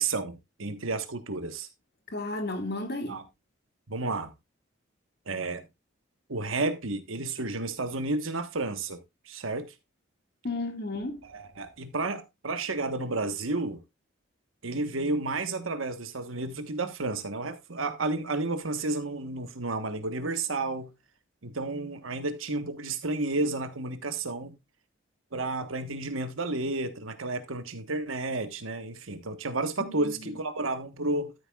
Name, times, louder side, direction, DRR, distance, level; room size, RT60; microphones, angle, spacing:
voice 1, 0.0-1.7 3.1-3.2 3.9-4.3 5.3-5.6 6.3-9.0 9.3-9.7 11.2-13.8 14.6-20.9 21.4-24.5 25.3-31.3, right 2 dB, 90° right, 1.4 m, -31 dB
voice 2, 2.1-3.2 10.4-11.2 29.8-30.1, left 2 dB, 50° left, 2.0 m, -33 dB
13.0 x 8.5 x 2.4 m
head